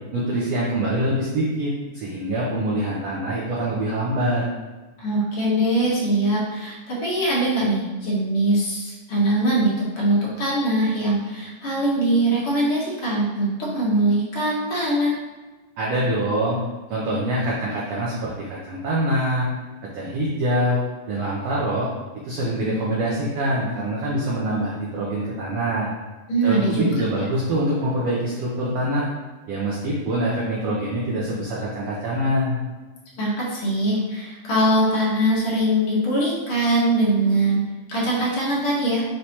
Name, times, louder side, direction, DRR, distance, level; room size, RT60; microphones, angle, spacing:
voice 1, 0.1-4.4 15.8-16.6 16.9-19.5 19.9-20.8 21.1-21.9 22.2-25.9 26.4-29.1 29.5-32.6, right 1 dB, 70° right, -6 dB, 1.6 m, -24 dB
voice 2, 5.0-15.1 26.3-26.9 33.2-37.6 37.9-39.0, right 1 dB, 60° left, -6 dB, 1.5 m, -22 dB
5.8 x 3.2 x 2.8 m, 1.2 s
omnidirectional pair, 3.5 m